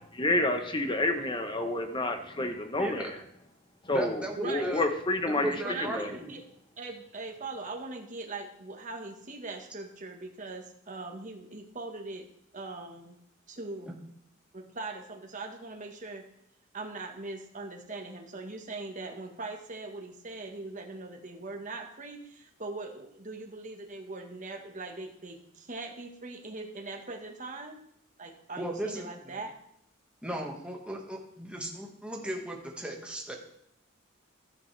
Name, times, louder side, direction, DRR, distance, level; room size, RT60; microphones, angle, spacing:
voice 1, 0.2-3.2 3.8-6.1, left 2 dB, 25° left, 6 dB, 1.0 m, -29 dB
voice 2, 2.8-3.1 3.9-4.9 5.3-6.3 13.9-14.0 28.6-29.4 30.2-33.3, right 1 dB, 5° right, 0 dB, 1.6 m, -36 dB
voice 3, 5.5-6.4 6.8-12.3 12.5-13.2 13.5-13.9 14.5-16.2 16.7-27.8 28.2-29.5, right 3 dB, 40° right, 3 dB, 1.4 m, -41 dB
12.5 x 9.5 x 3.3 m, 0.74 s
head